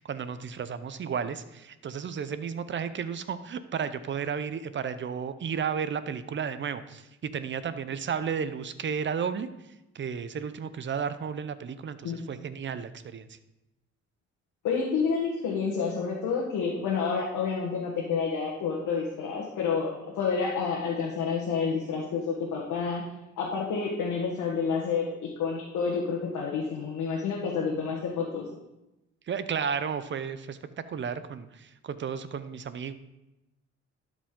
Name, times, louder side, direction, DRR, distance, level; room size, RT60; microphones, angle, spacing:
voice 1, 0.0-9.5 9.9-13.4 29.3-30.6 30.9-32.9, right 7 dB, 40° right, 13 dB, 0.6 m, -33 dB
voice 2, 14.6-23.0 23.4-28.4, left 5 dB, 75° left, -3 dB, 1.4 m, -29 dB
12.0 x 5.1 x 3.7 m, 0.95 s
cardioid pair, 90°, 30 cm